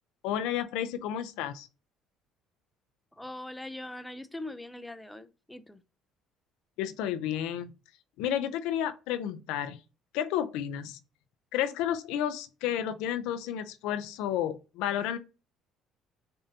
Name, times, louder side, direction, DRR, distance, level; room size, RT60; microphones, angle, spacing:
voice 1, 0.2-1.7 6.8-7.7 8.2-9.8 10.1-11.0 11.5-15.2, left 10 dB, 85° left, 0.5 m, -31 dB
voice 2, 3.2-5.8, left 1 dB, 5° left, 0.4 m, -41 dB
6.7 x 2.6 x 2.7 m
cardioid pair, 110°, 0 cm